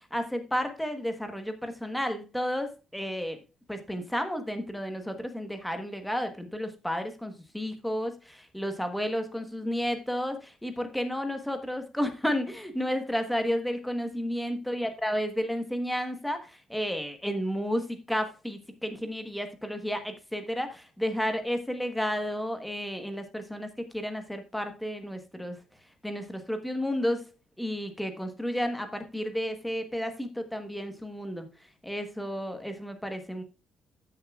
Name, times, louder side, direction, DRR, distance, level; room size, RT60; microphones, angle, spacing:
voice 1, 0.1-3.4 3.7-25.6 26.0-27.2 27.6-31.5 31.8-33.4, equal, 5° left, 6 dB, 1.2 m, -32 dB
14.5 x 6.8 x 2.4 m, 0.30 s
cardioid pair, 180°, 0 cm